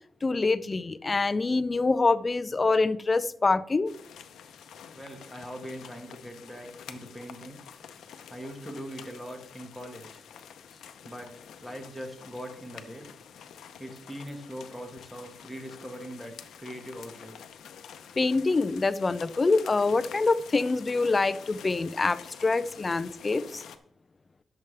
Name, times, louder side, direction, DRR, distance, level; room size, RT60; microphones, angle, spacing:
voice 1, 0.2-3.9 18.2-23.6, left 3 dB, 30° left, 13 dB, 0.5 m, -25 dB
sound 1, 3.9-23.8, left 8 dB, 90° left, 0.7 m, -48 dB
voice 2, 4.9-7.6 8.3-10.2 11.0-11.3 11.6-13.1 13.8-17.3, equal, 5° right, 3 dB, 1.8 m, -41 dB
11.5 x 6.8 x 3.4 m, 0.65 s
cardioid pair, 110°, 0 cm